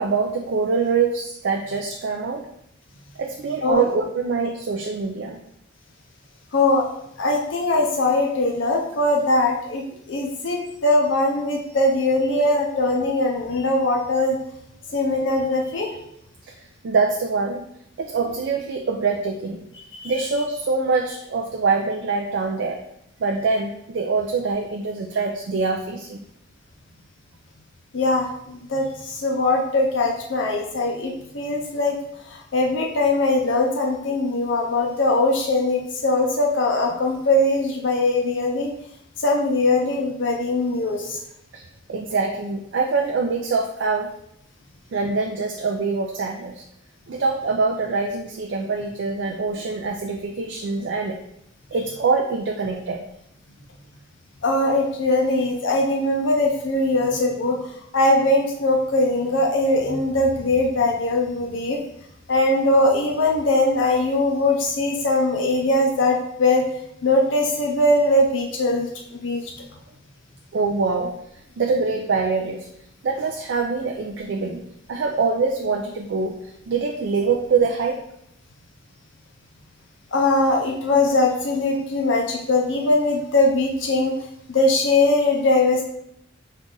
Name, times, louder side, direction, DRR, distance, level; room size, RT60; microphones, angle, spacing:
voice 1, 0.0-2.5 3.2-5.4 12.3-12.5 16.8-17.6 18.0-19.6 20.0-22.8 23.2-26.2 41.5-41.6 41.9-44.1 44.9-46.6 47.1-51.2 51.7-53.0 70.5-71.1 71.6-72.7 73.0-74.6 74.9-76.4 76.7-78.0, right 4 dB, 60° right, 2 dB, 0.4 m, -24 dB
voice 2, 6.5-6.8 7.2-9.8 10.1-14.4 14.9-15.9 19.9-20.1 27.9-31.9 32.3-38.7 39.2-41.2 54.4-57.6 57.9-61.8 62.3-66.6 67.0-68.9 69.2-69.5 80.1-84.1 84.5-85.8, left 2 dB, 70° left, 0 dB, 0.6 m, -21 dB
5.3 x 2.4 x 3.8 m, 0.77 s
head